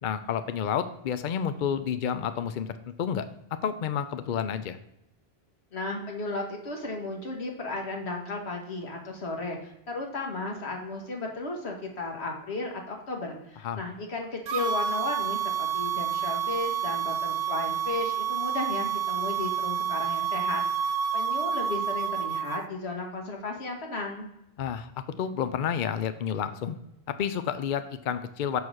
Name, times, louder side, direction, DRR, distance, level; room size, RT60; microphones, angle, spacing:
voice 1, 0.0-2.7 3.0-3.3 3.6-4.8 13.6-13.8 24.6-24.9 25.2-26.8 27.1-28.6, left 8 dB, 60° left, 11 dB, 0.6 m, -30 dB
voice 2, 5.7-24.3, left 3 dB, 85° left, 1 dB, 1.6 m, -34 dB
sound 1, 14.5-22.6, right 7 dB, 55° right, 0.5 m, -29 dB
7.1 x 4.7 x 6.2 m, 0.83 s
omnidirectional pair, 1.1 m